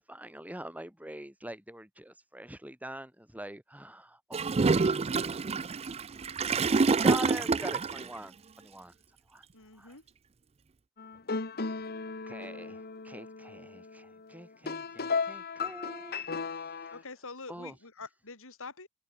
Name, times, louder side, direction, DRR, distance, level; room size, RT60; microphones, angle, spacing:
voice 1, 0.0-6.1 6.6-9.5 9.7-10.0 11.7-11.9 12.3-17.0 17.5-17.8, right 1 dB, 5° right, 3.2 m, -45 dB
Gurgling / Toilet flush, 4.3-8.1, right 4 dB, 25° right, 0.4 m, -27 dB
voice 2, 9.5-10.0 16.9-18.9, left 4 dB, 65° left, 6.1 m, -45 dB
sound 1, 11.0-17.0, left 4 dB, 45° left, 1.5 m, -36 dB
head